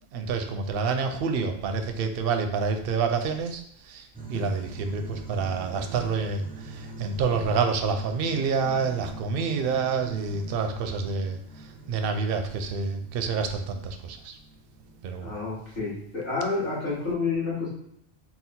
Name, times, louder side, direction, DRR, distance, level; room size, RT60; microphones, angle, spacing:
voice 1, 0.1-14.4 15.0-15.3, right 5 dB, 65° right, 5 dB, 0.7 m, -28 dB
sound 1, 4.1-15.1, right 2 dB, 10° right, 0.4 m, -43 dB
voice 2, 15.2-17.7, left 4 dB, 55° left, -8 dB, 1.8 m, -29 dB
3.9 x 2.3 x 4.2 m, 0.73 s
omnidirectional pair, 1.1 m